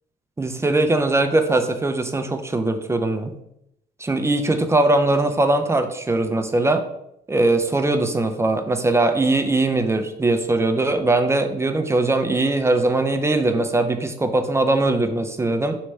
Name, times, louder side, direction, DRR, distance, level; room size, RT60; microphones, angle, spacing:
voice 1, 0.4-3.4 4.0-6.8 7.3-15.8, right 2 dB, 15° right, 7 dB, 0.5 m, -20 dB
3.2 x 3.1 x 4.5 m, 0.78 s
cardioid pair, 90°, 20 cm